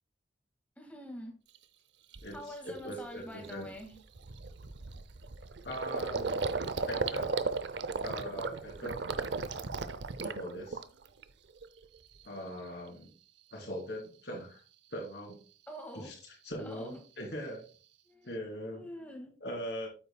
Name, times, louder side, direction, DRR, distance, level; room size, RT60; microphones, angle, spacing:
voice 1, 0.8-1.4 2.3-4.0 15.7-16.1 16.6-17.0 18.1-18.4 18.7-19.3, equal, 10° left, 2 dB, 2.0 m, -45 dB
Gurgling, 1.5-1.6 2.1-2.4 2.8-2.9 3.2-11.2 11.6-12.2, right 4 dB, 70° right, 0.6 m, -36 dB
voice 2, 2.6-3.7 5.6-6.3 6.9-7.3 8.0-9.0 10.2-10.8 12.2-13.1 13.5-14.6 14.9-15.4 15.9-16.1 16.4-17.6 18.2-18.8 19.4-19.9, equal, 65° left, -2 dB, 3.3 m, -40 dB
8.7 x 8.5 x 2.3 m, 0.37 s
head